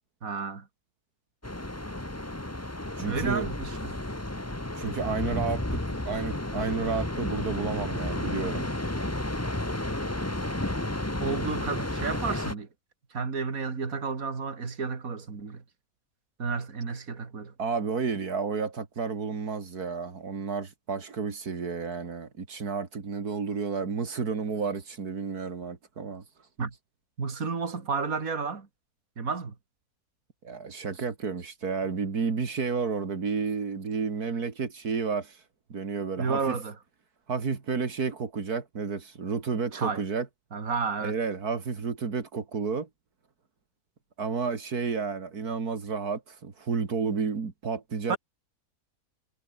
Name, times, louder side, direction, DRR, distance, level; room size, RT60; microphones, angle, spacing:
voice 1, 0.2-0.6 3.1-3.9 11.2-12.7 13.1-15.6 16.4-17.5 26.6-26.7 27.2-28.7 29.2-29.5 36.2-36.7 39.7-40.0 40.5-41.2 48.1-48.2, right 5 dB, 65° right, 3.0 m, -31 dB
sound 1, 1.4-12.5, left 1 dB, 10° left, 1.6 m, -32 dB
voice 2, 3.0-3.5 4.8-8.7 17.6-26.2 30.4-35.4 35.7-36.6 37.3-40.3 41.0-42.9 44.2-48.2, right 5 dB, 85° right, 2.9 m, -31 dB
omnidirectional pair, 1.6 m